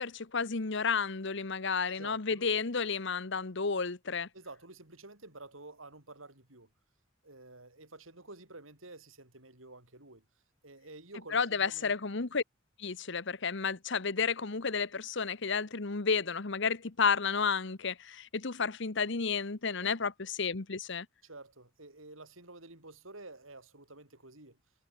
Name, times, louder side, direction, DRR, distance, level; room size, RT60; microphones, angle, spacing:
voice 1, 0.0-4.3 11.3-12.4 12.8-21.1, left 5 dB, 65° left, 1.2 m, -32 dB
voice 2, 1.9-2.5 4.3-6.7 7.2-10.2 10.6-12.0 19.8-19.9 21.2-24.6, right 2 dB, 85° right, 7.6 m, -50 dB
head